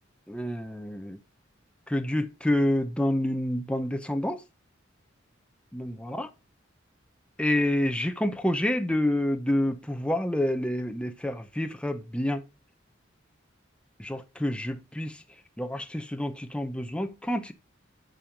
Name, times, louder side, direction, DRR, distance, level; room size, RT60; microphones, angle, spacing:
voice 1, 0.3-1.2 1.9-4.4 5.7-6.3 7.4-12.4 14.0-15.2 15.6-17.5, left 1 dB, 5° left, 0.8 m, -28 dB
9.2 x 5.6 x 5.1 m
head